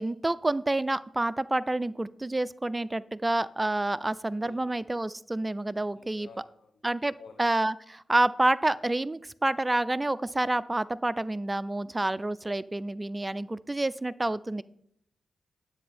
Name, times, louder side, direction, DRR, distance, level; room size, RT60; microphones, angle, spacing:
voice 1, 0.0-6.3 6.8-14.6, right 2 dB, 20° right, 16 dB, 0.4 m, -28 dB
voice 2, 5.9-6.7 7.2-7.5, left 5 dB, 80° left, 5 dB, 0.9 m, -51 dB
9.9 x 8.2 x 4.3 m, 0.69 s
cardioid pair, 65°, 0 cm